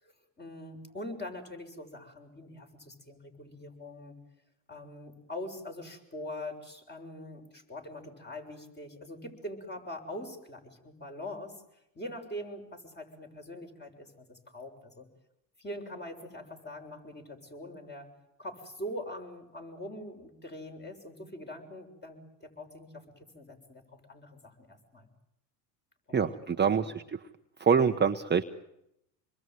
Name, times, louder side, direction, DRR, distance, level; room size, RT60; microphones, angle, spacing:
voice 1, 0.0-4.2 4.7-11.6 11.9-15.1 15.6-18.1 18.4-25.1 26.1-26.2 26.4-26.9, left 1 dB, 20° left, 4 dB, 6.8 m, -43 dB
voice 2, 26.1-27.2 27.6-28.4, right 6 dB, 20° right, 6 dB, 1.1 m, -25 dB
27.0 x 21.5 x 9.4 m, 0.81 s
supercardioid pair, 90°, 46 cm